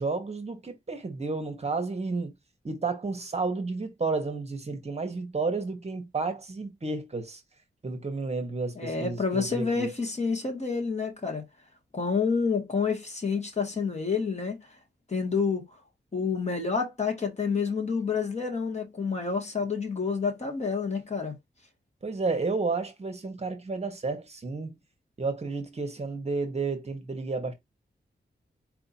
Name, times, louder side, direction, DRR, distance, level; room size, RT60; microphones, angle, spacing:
voice 1, 0.0-2.3 2.6-7.4 7.8-9.9 22.0-24.7 25.2-27.5, right 3 dB, 35° right, 1.0 m, -31 dB
voice 2, 8.8-11.4 11.9-14.6 15.1-15.6 16.1-21.3, left 5 dB, 40° left, 1.7 m, -28 dB
4.5 x 2.7 x 4.1 m
wide cardioid pair, 120°, 18 cm